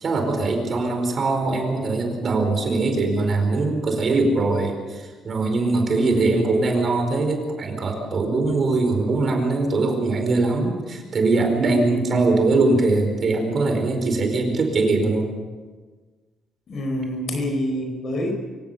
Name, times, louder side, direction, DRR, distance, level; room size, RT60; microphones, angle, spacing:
voice 1, 0.0-15.3, right 3 dB, 40° right, 4 dB, 4.7 m, -22 dB
voice 2, 5.9-6.4 11.8-12.3 16.7-18.3, equal, 50° left, 4 dB, 5.0 m, -27 dB
25.0 x 16.5 x 6.9 m, 1.4 s
cardioid pair, 125°, 0 cm